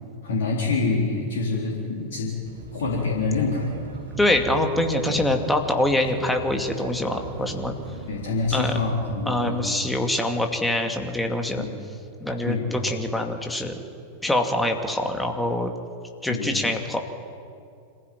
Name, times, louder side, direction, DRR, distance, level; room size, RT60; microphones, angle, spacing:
voice 1, 0.2-2.3 2.7-3.7 5.0-5.2 8.1-9.8 11.5-11.7 12.5-12.7 16.3-16.6, left 3 dB, 60° left, -3 dB, 3.9 m, -26 dB
sound 1, 2.4-9.3, right 2 dB, 65° right, 3.5 m, -39 dB
voice 2, 4.2-7.7 8.5-8.8 9.3-11.6 12.2-13.7 14.2-15.7 16.2-17.0, left 1 dB, 5° left, 3 dB, 2.4 m, -24 dB
26.0 x 15.5 x 9.3 m, 2.4 s
figure-of-eight pair, 90°, 0 cm